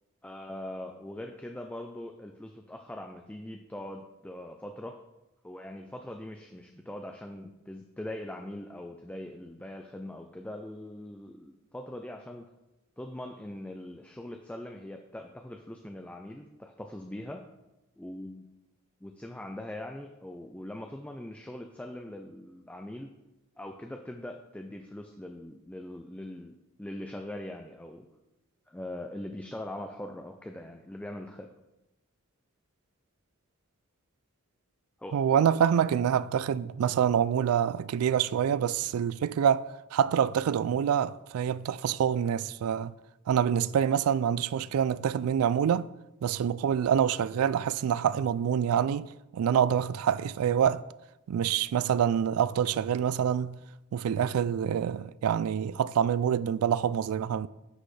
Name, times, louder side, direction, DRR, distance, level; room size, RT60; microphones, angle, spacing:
voice 1, 0.2-5.0 5.4-12.5 13.0-17.5 18.0-18.5 19.0-23.1 23.6-28.1 28.7-31.5 35.0-35.2, left 1 dB, 5° left, 0.4 m, -41 dB
voice 2, 35.1-42.9 43.3-45.9 46.2-50.9 51.3-53.6 53.9-57.5, right 8 dB, 90° right, 0.3 m, -26 dB
9.9 x 6.3 x 3.2 m
head